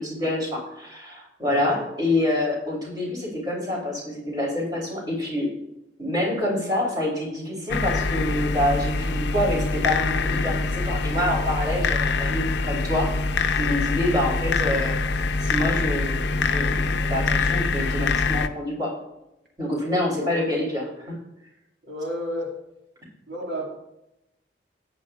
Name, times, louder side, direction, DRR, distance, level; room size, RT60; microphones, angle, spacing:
voice 1, 0.0-5.5 6.0-13.2 13.6-15.0 15.4-18.9 19.6-21.2, left 1 dB, 20° right, -2 dB, 3.4 m, -27 dB
voice 2, 1.5-1.8 14.1-14.4 20.2-20.3 21.8-22.6 23.3-23.7, equal, 80° right, -1 dB, 2.0 m, -31 dB
sound 1, 7.7-18.5, left 3 dB, 75° left, 0.6 m, -24 dB
14.0 x 9.5 x 2.4 m, 0.87 s
head